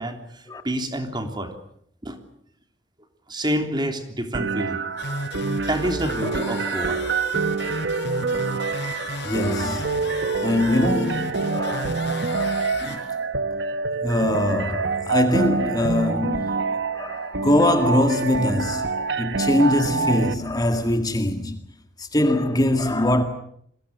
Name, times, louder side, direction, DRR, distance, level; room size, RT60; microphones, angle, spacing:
voice 1, 0.0-1.5 2.0-2.2 3.3-4.8 5.7-7.0, right 1 dB, 25° right, 3.3 m, -28 dB
sound 1, 4.3-20.3, right 4 dB, 65° right, 1.2 m, -26 dB
sound 2, 5.0-13.0, left 1 dB, 60° left, 6.3 m, -34 dB
voice 2, 6.2-7.2 8.5-8.9 9.2-10.0 10.4-13.0 14.0-16.6 16.9-18.9 19.2-21.6 22.0-23.2, left 1 dB, 20° left, 1.9 m, -23 dB
30.0 x 22.5 x 6.6 m
head